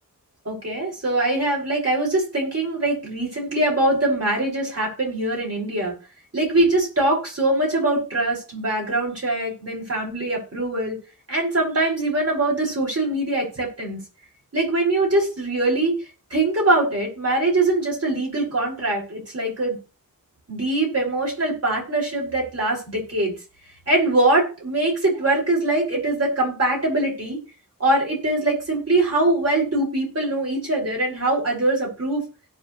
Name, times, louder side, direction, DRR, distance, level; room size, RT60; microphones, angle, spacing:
voice 1, 0.4-6.0 6.3-11.0 11.3-14.0 14.5-16.0 16.3-19.8 20.5-23.3 23.9-27.4 27.8-32.2, right 2 dB, 45° right, -3 dB, 6.2 m, -22 dB
17.0 x 7.1 x 3.3 m, 0.33 s
wide cardioid pair, 80°, 35 cm